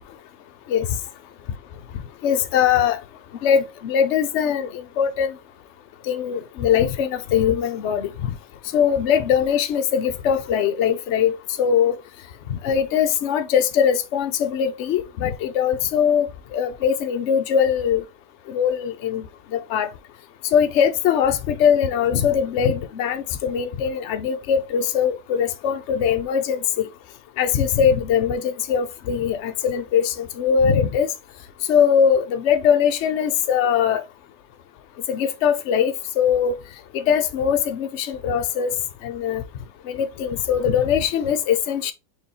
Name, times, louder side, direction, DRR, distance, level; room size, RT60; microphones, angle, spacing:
voice 1, 2.2-3.0 3.4-4.7 5.0-5.3 6.1-8.3 8.7-12.0 12.5-16.3 16.5-18.0 18.5-19.2 19.5-19.9 20.5-26.9 27.4-31.1 31.7-34.0 35.1-36.6 36.9-38.7 39.0-39.4 39.9-41.9, left 8 dB, 85° left, 0.6 m, -21 dB
4.5 x 3.1 x 3.5 m
omnidirectional pair, 1.9 m